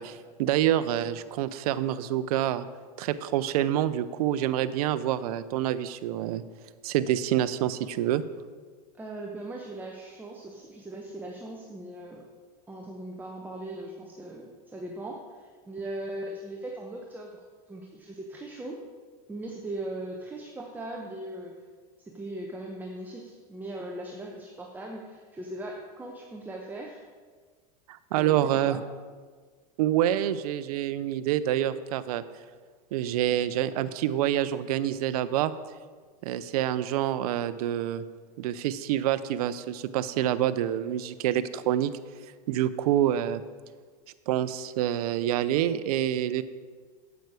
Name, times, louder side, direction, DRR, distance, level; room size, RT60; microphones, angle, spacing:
voice 1, 0.0-2.7 3.0-6.4 6.8-8.2 27.9-28.8 29.8-32.2 32.9-35.5 36.2-38.0 38.4-41.9 42.5-43.4 44.3-46.4, right 12 dB, 70° right, 14 dB, 0.6 m, -27 dB
voice 2, 8.9-12.3 12.7-18.8 19.3-21.7 22.1-27.0 28.2-28.8, right 1 dB, 10° right, 0 dB, 0.9 m, -39 dB
9.2 x 8.1 x 4.8 m, 1.5 s
supercardioid pair, 135°, 20 cm